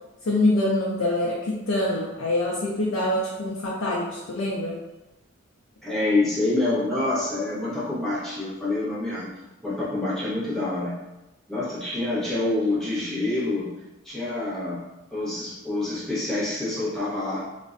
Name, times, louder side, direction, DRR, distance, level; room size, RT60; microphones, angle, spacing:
voice 1, 0.2-4.8, left 1 dB, 80° left, -4 dB, 0.4 m, -25 dB
voice 2, 5.8-9.3 9.6-10.9 11.5-13.7 14.0-14.8 15.1-17.4, left 2 dB, ahead, -10 dB, 0.7 m, -26 dB
2.5 x 2.1 x 2.4 m, 0.99 s
head